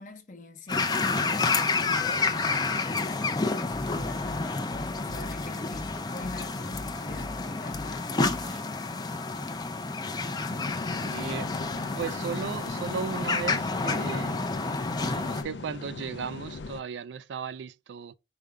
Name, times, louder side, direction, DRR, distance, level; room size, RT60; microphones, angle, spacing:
voice 1, 0.0-8.2, left 2 dB, 45° left, 0.8 m, -43 dB
sound 1, 0.7-15.4, left 3 dB, 20° left, 0.4 m, -30 dB
sound 2, 3.7-8.6, left 2 dB, 35° right, 0.6 m, -42 dB
sound 3, 10.5-16.8, left 3 dB, 85° left, 0.4 m, -40 dB
voice 2, 11.1-11.7 12.0-14.5 14.9-18.1, right 6 dB, 85° right, 0.4 m, -36 dB
5.0 x 2.2 x 4.7 m
head